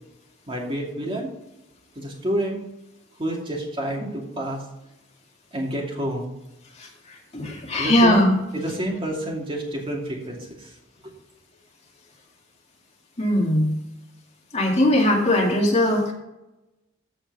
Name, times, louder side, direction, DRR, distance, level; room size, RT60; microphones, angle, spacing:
voice 1, 0.5-1.3 2.0-2.6 3.2-4.6 5.5-6.3 7.8-8.2 8.5-10.7, right 1 dB, 25° right, -1 dB, 2.5 m, -28 dB
voice 2, 7.3-8.3 13.2-13.7 14.5-16.1, left 1 dB, 35° left, -1 dB, 2.3 m, -19 dB
14.5 x 5.0 x 5.4 m, 0.93 s
head